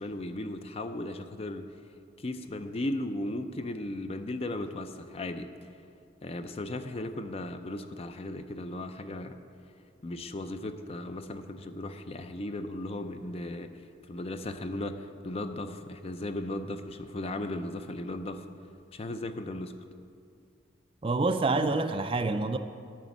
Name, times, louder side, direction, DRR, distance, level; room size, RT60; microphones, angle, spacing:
voice 1, 0.0-1.6 2.2-5.7 6.2-9.4 10.0-18.5 18.9-19.7, left 1 dB, 30° left, 0.5 m, -36 dB
voice 2, 21.0-22.6, right 3 dB, 30° right, 0.4 m, -27 dB
9.1 x 6.0 x 8.3 m
head